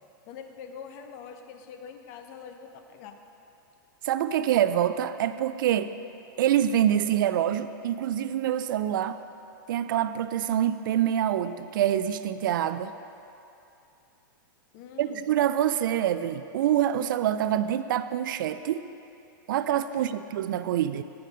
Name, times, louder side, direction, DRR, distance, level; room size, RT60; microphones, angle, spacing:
voice 1, 0.3-3.2 14.7-15.2 19.9-20.2, left 7 dB, 50° left, 6 dB, 0.7 m, -44 dB
voice 2, 4.0-5.9 6.4-9.2 9.7-12.9 15.0-18.8 19.5-21.0, right 10 dB, 70° right, 12 dB, 0.4 m, -26 dB
8.3 x 5.8 x 5.0 m, 2.7 s
hypercardioid pair, 130°, 11 cm